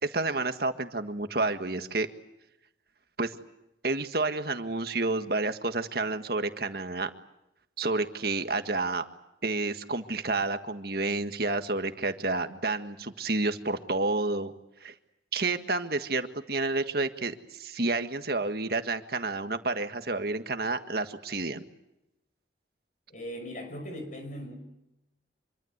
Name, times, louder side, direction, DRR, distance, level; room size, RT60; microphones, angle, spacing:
voice 1, 0.0-2.1 3.2-3.3 3.8-7.1 7.8-9.1 9.4-14.5 14.8-14.9 15.3-21.6, right 3 dB, 55° right, 8 dB, 1.7 m, -30 dB
voice 2, 23.1-24.6, equal, 45° left, 6 dB, 6.1 m, -39 dB
26.0 x 24.5 x 8.1 m, 0.89 s
head